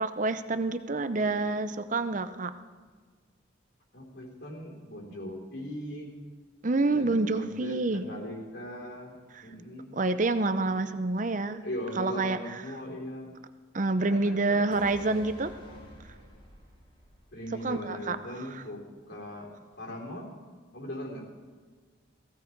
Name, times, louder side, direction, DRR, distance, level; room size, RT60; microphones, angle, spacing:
voice 1, 0.0-2.6 6.6-8.1 9.9-11.6 12.0-12.4 13.7-15.5 17.6-18.2, right 3 dB, 40° right, 11 dB, 0.7 m, -27 dB
voice 2, 3.9-6.1 6.9-9.1 9.4-9.9 11.6-13.3 14.0-14.9 17.3-20.3 20.7-21.3, equal, 55° left, -1 dB, 3.9 m, -39 dB
sound 1, 14.7-18.3 18.6-18.7, equal, 25° left, 2.6 m, -50 dB
18.5 x 16.0 x 4.7 m, 1.5 s
head